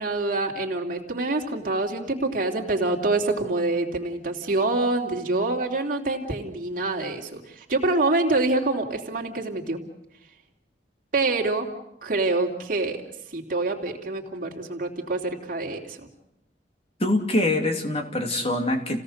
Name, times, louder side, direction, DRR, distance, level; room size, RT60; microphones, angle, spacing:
voice 1, 0.0-9.8 11.1-11.7 12.0-13.0 13.3-16.1, right 2 dB, 50° right, 1 dB, 2.9 m, -26 dB
voice 2, 17.0-19.0, left 1 dB, 35° left, 4 dB, 2.7 m, -24 dB
28.5 x 17.5 x 6.6 m, 0.84 s
head